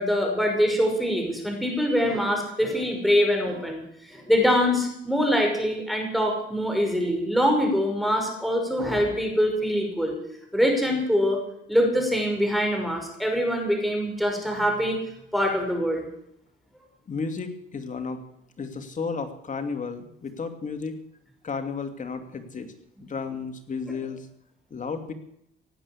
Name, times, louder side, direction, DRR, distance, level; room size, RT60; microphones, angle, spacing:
voice 1, 0.0-3.8 4.1-10.2 10.5-11.4 11.7-15.0 15.3-16.1, equal, ahead, 2 dB, 5.6 m, -24 dB
voice 2, 17.1-18.2 18.6-21.0 21.4-22.7 23.0-24.3 24.7-25.1, left 5 dB, 40° left, 7 dB, 2.6 m, -33 dB
17.5 x 9.0 x 8.7 m, 0.76 s
cardioid pair, 90°, 20 cm